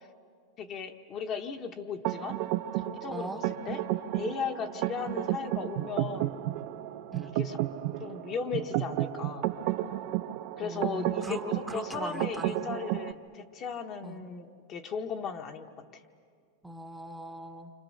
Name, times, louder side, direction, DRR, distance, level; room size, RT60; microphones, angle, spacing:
voice 1, 0.6-2.4 2.8-3.8 4.1-6.4 7.3-7.6 8.0-9.5 10.6-15.7 15.9-16.0, left 6 dB, 30° left, 5 dB, 1.2 m, -36 dB
sound 1, 2.0-13.1, right 14 dB, 50° right, 0.8 m, -32 dB
voice 2, 3.1-3.5 7.1-7.4 10.6-11.4 11.7-12.6 14.0-14.2 16.6-17.7, right 2 dB, 5° right, 5 dB, 1.0 m, -40 dB
29.0 x 26.0 x 6.5 m, 2.2 s
supercardioid pair, 155°, 0 cm